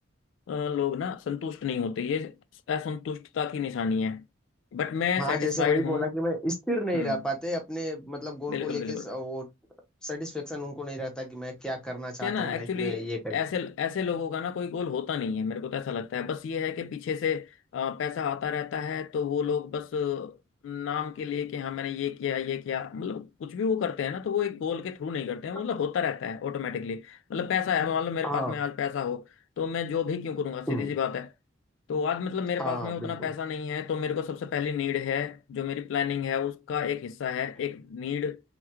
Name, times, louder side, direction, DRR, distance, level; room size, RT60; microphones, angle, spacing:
voice 1, 0.5-2.4 2.7-4.3 4.7-6.1 6.9-7.2 8.5-9.1 12.2-13.0 13.3-20.4 20.6-29.3 29.6-31.3 31.9-38.4, left 7 dB, 80° left, 0.3 m, -30 dB
voice 2, 5.2-9.5 10.0-13.4 28.2-28.6 30.7-30.9 32.6-33.3, left 1 dB, 5° left, 0.7 m, -32 dB
3.4 x 2.2 x 2.8 m
head